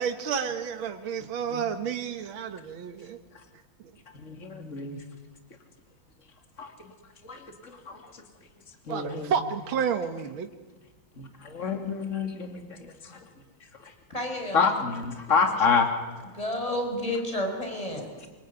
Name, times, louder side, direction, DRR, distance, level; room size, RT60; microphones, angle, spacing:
voice 1, 0.0-3.2 3.8-3.9 8.9-10.5, right 7 dB, 80° right, 7 dB, 2.1 m, -30 dB
voice 2, 4.1-5.0 6.6-6.9 7.2-8.1 8.9-9.3 11.2-13.2 13.8-13.9 14.5-15.9 16.2-16.3, left 5 dB, 35° left, 5 dB, 3.0 m, -28 dB
voice 3, 14.1-14.6 16.3-18.1, left 1 dB, 15° left, 3 dB, 5.6 m, -30 dB
25.5 x 23.0 x 9.7 m, 1.3 s
omnidirectional pair, 2.2 m